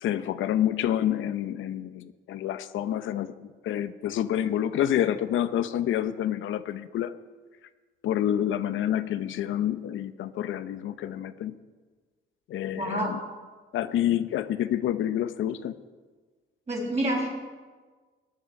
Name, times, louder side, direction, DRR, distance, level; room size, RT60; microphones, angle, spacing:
voice 1, 0.0-7.1 8.0-11.5 12.5-13.2 13.7-15.8, left 11 dB, 80° left, 12 dB, 0.8 m, -28 dB
voice 2, 12.8-13.1 16.7-17.3, right 1 dB, 35° right, -1 dB, 5.9 m, -27 dB
19.5 x 10.0 x 5.3 m, 1.4 s
cardioid pair, 90°, 20 cm